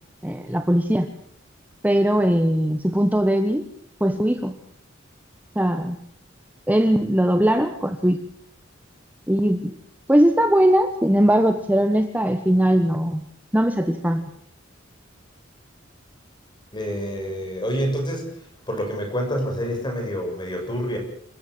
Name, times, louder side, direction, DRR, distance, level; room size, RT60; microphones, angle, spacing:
voice 1, 0.2-1.1 1.8-3.6 4.0-4.5 5.5-6.0 6.7-8.2 9.3-9.7 10.1-13.2 13.5-14.3, equal, 10° right, 7 dB, 1.2 m, -20 dB
voice 2, 16.7-18.3 18.7-21.0, equal, 25° left, 3 dB, 6.9 m, -27 dB
27.0 x 14.5 x 7.9 m, 0.65 s
head